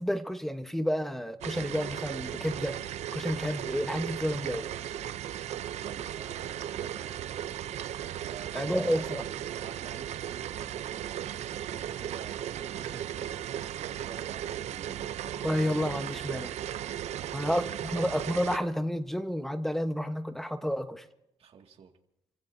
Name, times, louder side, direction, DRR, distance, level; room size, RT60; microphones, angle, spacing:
voice 1, 0.0-2.8 3.1-4.7 8.5-9.2 15.3-16.5 17.3-21.0, equal, 5° left, 8 dB, 1.1 m, -30 dB
sound 1, 1.4-18.6, right 11 dB, 70° right, 0.6 m, -36 dB
voice 2, 5.4-7.4 8.2-15.0 21.4-21.9, right 6 dB, 55° right, 3 dB, 2.2 m, -49 dB
30.0 x 15.5 x 2.7 m, 0.84 s
cardioid pair, 120°, 12 cm